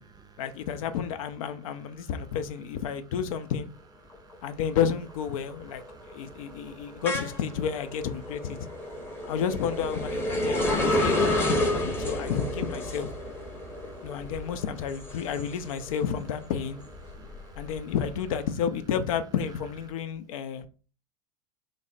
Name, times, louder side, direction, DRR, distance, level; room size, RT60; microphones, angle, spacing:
voice 1, 0.4-3.7 4.4-8.6 9.3-13.1 14.0-16.8 17.6-20.7, left 7 dB, 65° left, 0.5 m, -31 dB
sound 1, 4.1-4.5 4.9-16.2 16.6-18.3, left 1 dB, 10° left, 0.7 m, -30 dB
voice 2, 5.9-7.0 8.6-9.3 10.5-11.0 13.5-14.3 17.0-17.7, right 4 dB, 20° right, 0.5 m, -54 dB
3.2 x 2.1 x 3.9 m
hypercardioid pair, 95°, 19 cm